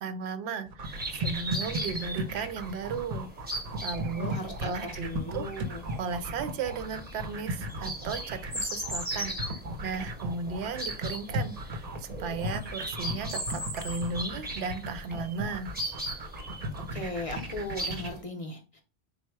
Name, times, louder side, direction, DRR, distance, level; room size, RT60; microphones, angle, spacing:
voice 1, 0.0-3.3 3.8-5.5 6.0-15.7, right 5 dB, 80° right, 11 dB, 0.8 m, -35 dB
sound 1, 0.7-18.1, right 1 dB, 45° right, 0.6 m, -36 dB
Robin song thrush and chaffinch in background, 0.8-18.2, right 1 dB, 10° right, 0.7 m, -39 dB
voice 2, 4.1-5.9 16.9-18.8, left 1 dB, 40° left, 4 dB, 0.6 m, -37 dB
4.1 x 2.0 x 4.5 m, 0.33 s
omnidirectional pair, 1.1 m